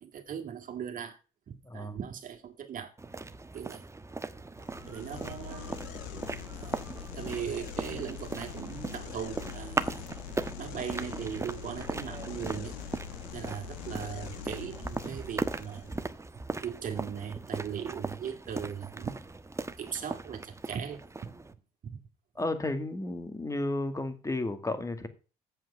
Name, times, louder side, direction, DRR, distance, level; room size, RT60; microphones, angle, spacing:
voice 1, 0.0-1.2 1.5-2.9 3.5-3.8 4.9-5.8 6.3-6.9 7.1-10.0 10.6-12.8 13.3-16.0 16.6-19.2 19.8-21.3 21.8-22.0, right 8 dB, 55° right, 2.2 m, -39 dB
voice 2, 1.7-2.0 22.4-25.1, left 2 dB, 20° left, 2.1 m, -33 dB
sound 1, 3.0-21.5, right 3 dB, 15° right, 1.2 m, -38 dB
sound 2, 4.6-16.0, left 8 dB, 85° left, 1.5 m, -43 dB
8.1 x 7.6 x 6.8 m
supercardioid pair, 65°, 17 cm